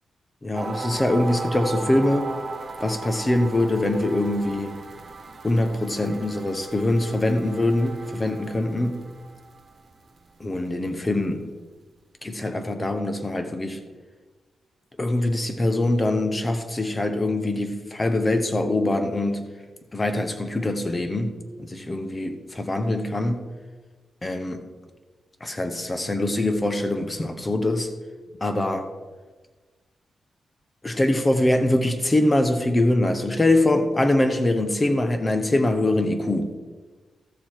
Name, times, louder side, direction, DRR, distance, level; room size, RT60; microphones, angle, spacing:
voice 1, 0.4-2.3 2.8-4.8 5.4-9.0 10.4-11.5 12.2-13.8 15.0-19.5 19.9-23.4 24.2-24.6 25.4-27.9 28.4-28.9 30.8-36.5, left 1 dB, 20° left, 7 dB, 1.0 m, -23 dB
sound 1, 0.5-10.5, right 4 dB, 45° right, 1.6 m, -37 dB
13.5 x 6.9 x 4.5 m, 1.3 s
wide cardioid pair, 120°, 0 cm